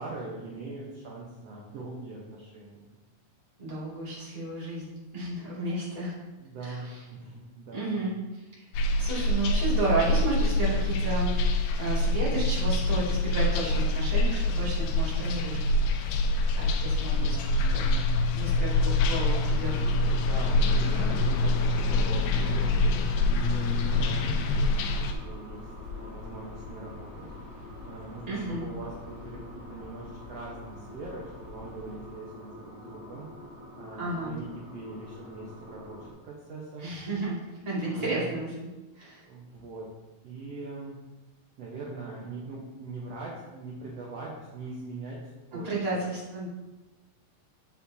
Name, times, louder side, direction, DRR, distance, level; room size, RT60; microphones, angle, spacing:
voice 1, 0.0-2.9 6.4-8.0 17.1-18.1 19.8-25.7 25.9-27.3 27.9-33.3 33.8-36.8 37.8-38.3 39.2-39.9 40.2-41.0 41.6-45.2 45.5-46.0, right 3 dB, 70° right, -4 dB, 1.5 m, -42 dB
voice 2, 3.6-4.8 5.1-6.2 6.6-6.8 7.7-8.7 9.0-15.6 16.5-17.3 17.7-17.8 18.3-19.7 28.3-28.6 34.0-34.4 36.8-37.4 37.6-38.7 38.9-39.2 45.6-46.5, right 2 dB, 15° right, -8 dB, 1.5 m, -32 dB
sound 1, 8.7-25.1, left 2 dB, 80° left, 2.4 m, -25 dB
sound 2, 12.5-32.1, left 2 dB, 50° right, 3.8 m, -46 dB
sound 3, 19.7-36.1, left 1 dB, 45° left, 1.3 m, -47 dB
8.1 x 6.6 x 2.8 m, 1.1 s
omnidirectional pair, 4.3 m